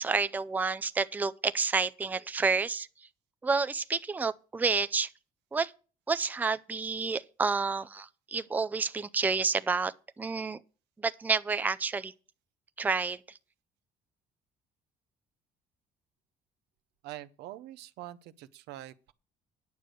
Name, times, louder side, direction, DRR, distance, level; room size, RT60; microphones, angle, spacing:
voice 1, 0.0-2.9 3.4-5.1 5.5-5.7 6.1-10.6 11.0-12.1 12.8-13.2, right 4 dB, 10° right, 0.4 m, -29 dB
voice 2, 17.0-19.1, right 14 dB, 85° right, 0.7 m, -44 dB
9.4 x 6.6 x 6.3 m
cardioid pair, 110°, 17 cm